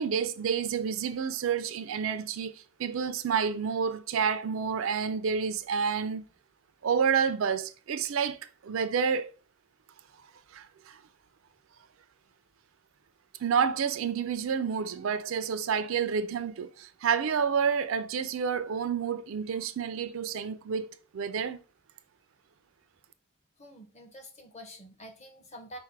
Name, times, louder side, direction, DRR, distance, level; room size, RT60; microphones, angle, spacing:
voice 1, 0.0-6.2 6.8-9.3 10.5-11.0 13.4-21.6, right 6 dB, 65° right, 0.4 m, -29 dB
voice 2, 23.6-25.8, equal, 30° left, 0.8 m, -47 dB
4.5 x 2.1 x 4.6 m
head